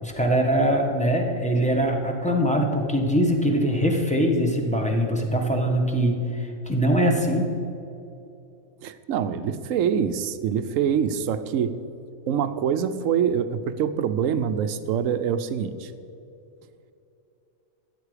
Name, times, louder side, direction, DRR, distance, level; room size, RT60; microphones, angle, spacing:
voice 1, 0.0-7.5, equal, 5° left, 1 dB, 1.3 m, -22 dB
voice 2, 8.8-11.8 12.3-15.9, right 8 dB, 75° right, 11 dB, 1.0 m, -25 dB
13.0 x 8.9 x 5.0 m, 2.7 s
omnidirectional pair, 1.4 m